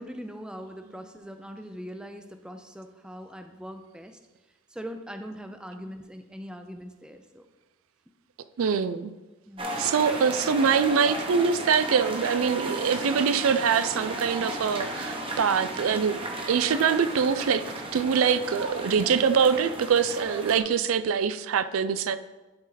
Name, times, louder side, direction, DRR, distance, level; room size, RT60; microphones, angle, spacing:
voice 1, 0.0-4.2 4.7-7.5 9.5-9.7, equal, 5° right, 6 dB, 0.4 m, -41 dB
voice 2, 8.6-9.1 9.8-16.2 16.5-17.6 17.9-22.2, right 6 dB, 85° right, 13 dB, 0.4 m, -24 dB
sound 1, 9.6-20.6, right 1 dB, 25° right, 0.9 m, -34 dB
11.5 x 4.1 x 3.9 m, 1.2 s
head